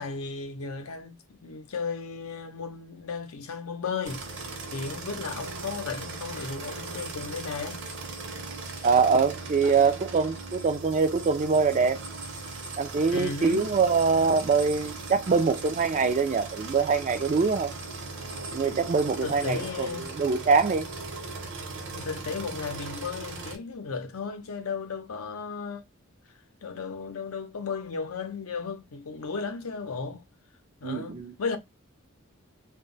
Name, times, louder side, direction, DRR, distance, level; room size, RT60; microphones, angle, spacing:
voice 1, 0.0-4.2 4.7-7.8 9.6-9.7 13.1-13.7 19.2-20.1 21.9-25.8 26.6-30.2 30.8-31.6, left 5 dB, 80° left, 0.6 m, -35 dB
sound 1, 4.0-23.6, right 3 dB, 60° right, 0.8 m, -38 dB
voice 2, 8.8-12.0 12.8-17.7 18.5-20.9 30.8-31.3, right 5 dB, 35° right, 0.3 m, -24 dB
2.2 x 2.0 x 3.8 m
head